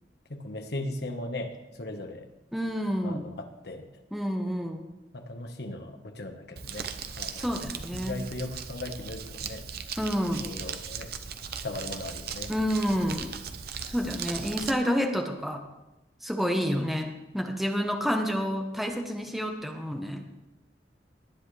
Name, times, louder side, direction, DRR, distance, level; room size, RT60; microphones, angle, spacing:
voice 1, 0.3-2.3 3.0-3.9 5.1-6.9 7.2-7.5 7.9-9.6 10.4-11.1 11.6-12.5, left 1 dB, 65° left, 5 dB, 1.4 m, -37 dB
voice 2, 2.5-3.3 4.1-4.9 7.4-8.2 10.0-10.5 12.5-13.3 13.9-15.6 16.2-20.2, equal, ahead, 3 dB, 1.1 m, -29 dB
Crumpling crinkling, 6.6-14.7, right 6 dB, 60° right, 0.8 m, -38 dB
18.5 x 10.0 x 3.3 m, 0.98 s
head